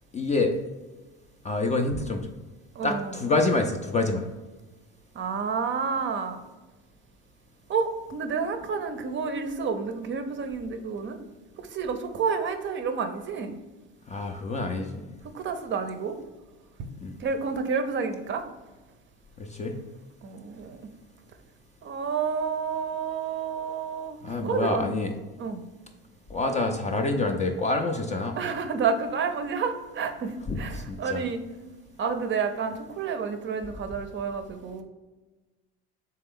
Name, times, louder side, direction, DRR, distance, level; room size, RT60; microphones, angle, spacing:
voice 1, 0.1-0.6 1.4-2.3 2.8-4.2 14.1-15.0 17.0-17.1 19.4-19.8 24.2-25.1 26.3-28.4 30.5-31.2, left 3 dB, 25° left, 4 dB, 0.3 m, -27 dB
voice 2, 2.8-3.1 5.1-6.4 7.7-11.2 11.6-13.6 15.2-16.2 16.8-16.9 17.2-18.4 20.2-20.8 21.8-24.9 25.4-25.6 28.4-31.4 32.0-34.8, right 5 dB, 35° right, 8 dB, 0.5 m, -30 dB
3.4 x 3.3 x 3.6 m, 1.2 s
supercardioid pair, 90°, 33 cm